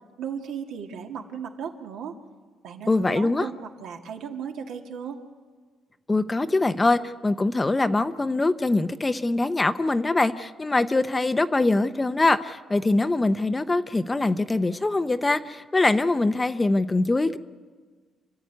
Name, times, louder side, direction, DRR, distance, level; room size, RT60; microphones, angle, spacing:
voice 1, 0.2-2.2 2.6-5.2, right 7 dB, 75° right, 3 dB, 2.1 m, -36 dB
voice 2, 2.9-3.5 6.1-17.4, left 2 dB, 15° left, 11 dB, 0.7 m, -23 dB
28.5 x 13.0 x 9.5 m, 1.5 s
cardioid pair, 120°, 0 cm